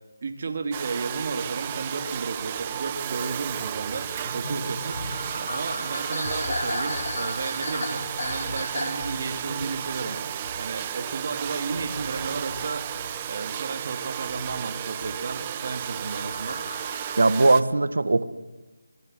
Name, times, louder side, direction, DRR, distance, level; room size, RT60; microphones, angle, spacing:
voice 1, 0.2-16.6, right 4 dB, 35° right, 6 dB, 2.4 m, -33 dB
Domestic sounds home sounds, 0.7-17.6, right 10 dB, 20° right, 0.9 m, -33 dB
sound 1, 3.9-13.8 14.3-15.3 15.8-17.2, left 2 dB, 50° left, 6.3 m, -35 dB
voice 2, 17.2-18.2, right 2 dB, 75° right, 13 dB, 1.8 m, -19 dB
25.0 x 23.0 x 7.8 m, 1.1 s
figure-of-eight pair, 170°, 0 cm